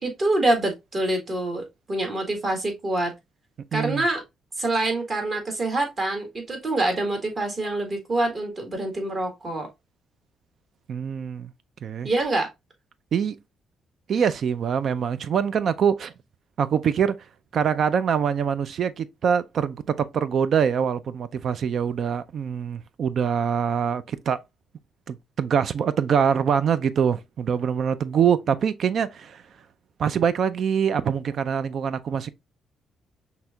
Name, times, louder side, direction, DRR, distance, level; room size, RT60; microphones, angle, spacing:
voice 1, 0.0-3.1 3.7-4.2 4.6-9.7 12.0-12.5, right 2 dB, 40° right, 1.7 m, -26 dB
voice 2, 3.7-4.1 10.9-11.5 11.8-12.1 13.1-13.4 14.1-16.1 16.6-17.2 17.5-24.4 25.1-29.4 30.0-32.3, right 7 dB, 60° right, 0.3 m, -24 dB
5.8 x 2.7 x 2.2 m
cardioid pair, 90°, 0 cm